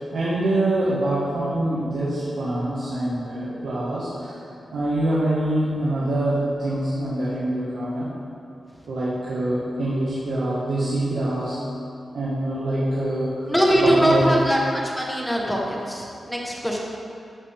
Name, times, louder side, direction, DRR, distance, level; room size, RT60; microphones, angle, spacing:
voice 1, 0.1-4.4 4.7-8.1 8.9-11.6 12.1-13.3 13.8-14.4, right 1 dB, 90° right, -9 dB, 1.5 m, -25 dB
voice 2, 13.5-16.8, equal, 5° left, -2 dB, 1.0 m, -21 dB
12.0 x 5.7 x 3.4 m, 2.5 s
wide cardioid pair, 170°, 0 cm